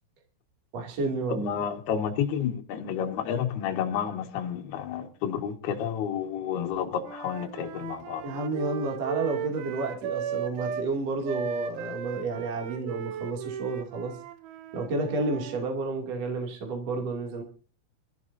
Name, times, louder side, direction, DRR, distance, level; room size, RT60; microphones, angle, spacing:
voice 1, 0.7-1.5 8.2-14.2 14.7-17.4, right 3 dB, 40° right, 3.1 m, -31 dB
voice 2, 1.3-8.2, left 8 dB, 65° left, 3.5 m, -30 dB
Wind instrument woodwind instrument, 7.0-10.9 11.3-15.6, right 7 dB, 90° right, 3.7 m, -36 dB
27.5 x 14.0 x 2.7 m
omnidirectional pair, 5.4 m